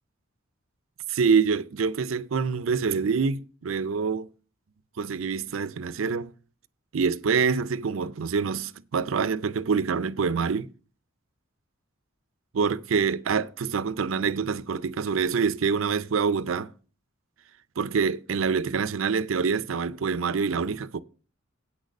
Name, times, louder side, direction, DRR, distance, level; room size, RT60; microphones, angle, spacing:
voice 1, 1.1-4.3 5.0-6.3 6.9-10.7 12.5-16.7 17.8-21.0, right 5 dB, 80° right, 0.5 m, -26 dB
8.7 x 6.5 x 6.4 m
head